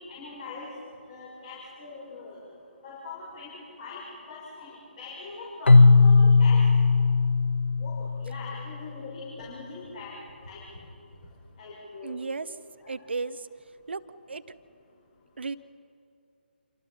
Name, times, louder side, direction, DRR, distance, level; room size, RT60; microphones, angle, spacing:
voice 1, 0.1-0.7 1.1-2.4 2.8-3.5 3.8-4.0 4.3-6.6 7.8-10.1 10.5-10.6 11.6-12.2 12.8-12.9, left 4 dB, 40° left, -4 dB, 5.9 m, -42 dB
Keyboard (musical), 5.7-8.6, left 4 dB, 80° left, 0.6 m, -18 dB
voice 2, 12.0-12.5 12.9-13.5 13.9-14.4 15.4-15.6, right 4 dB, 70° right, 15 dB, 0.9 m, -34 dB
28.0 x 25.0 x 5.6 m, 2.6 s
figure-of-eight pair, 140°, 6 cm